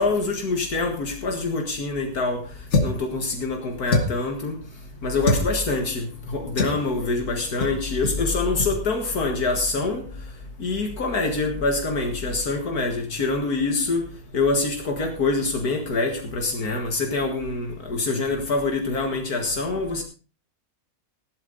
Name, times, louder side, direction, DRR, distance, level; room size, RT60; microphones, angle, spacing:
voice 1, 0.0-2.4 2.8-4.6 5.0-10.1 10.6-14.0 14.3-20.0, left 3 dB, 75° left, 2.3 m, -25 dB
sound 1, 2.7-3.1 3.9-4.3 5.2-5.5 6.6-6.8 7.6-7.8 8.0-8.2 8.5-8.7, left 2 dB, 50° left, 2.1 m, -23 dB
15.5 x 11.5 x 4.0 m
omnidirectional pair, 1.6 m